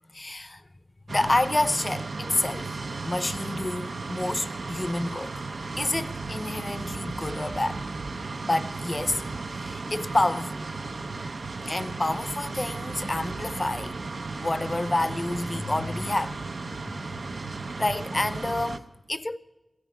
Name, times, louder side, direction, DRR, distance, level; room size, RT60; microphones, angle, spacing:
voice 1, 0.1-0.6 1.1-2.7 3.0-5.3 5.8-7.8 8.5-9.2 9.5-10.6 11.7-14.0 14.4-16.4 16.7-16.9 17.8-19.4, left 2 dB, 35° left, 0.6 m, -28 dB
sound 1, 1.1-18.8, right 3 dB, 80° right, 0.7 m, -35 dB
16.0 x 15.0 x 4.7 m
wide cardioid pair, 65°, 0 cm